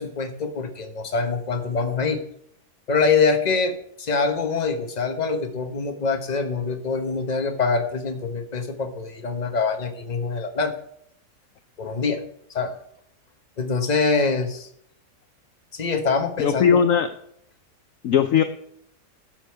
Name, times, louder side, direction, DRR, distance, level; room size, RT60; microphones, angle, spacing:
voice 1, 0.0-2.2 2.9-10.7 11.8-12.2 12.5-12.7 13.6-14.7 15.7-16.8, left 4 dB, 30° left, 6 dB, 1.1 m, -24 dB
voice 2, 16.4-17.1 18.0-18.4, left 8 dB, 65° left, 8 dB, 0.9 m, -18 dB
12.0 x 6.8 x 4.6 m, 0.69 s
omnidirectional pair, 1.7 m